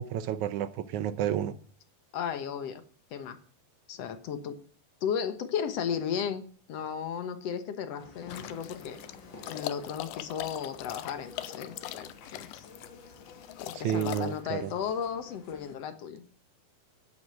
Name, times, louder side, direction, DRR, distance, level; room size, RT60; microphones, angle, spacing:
voice 1, 0.0-1.6 13.7-14.7, right 10 dB, 75° right, 1.9 m, -31 dB
voice 2, 2.1-2.8 3.1-3.4 3.9-4.6 5.0-9.0 9.5-12.7 13.6-16.2, left 7 dB, 60° left, 1.8 m, -34 dB
sound 1, 8.0-15.8, left 4 dB, 40° left, 2.3 m, -51 dB
sound 2, 8.3-14.4, left 14 dB, 80° left, 2.5 m, -41 dB
11.0 x 9.9 x 7.6 m
omnidirectional pair, 4.1 m